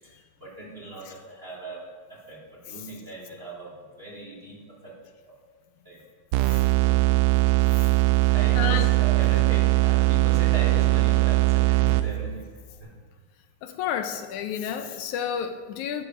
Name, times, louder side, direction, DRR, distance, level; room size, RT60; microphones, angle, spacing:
voice 1, 0.0-1.8 2.1-4.9 5.3-5.4 5.8-6.0 6.8-7.0 8.2-12.4 12.8-13.0, right 1 dB, 20° right, -4 dB, 3.0 m, -38 dB
sound 1, 6.3-12.4, right 19 dB, 80° right, 1.6 m, -21 dB
voice 2, 8.6-8.9 13.6-16.0, left 8 dB, 80° left, 7 dB, 2.1 m, -30 dB
11.5 x 11.0 x 5.9 m, 1.5 s
omnidirectional pair, 3.5 m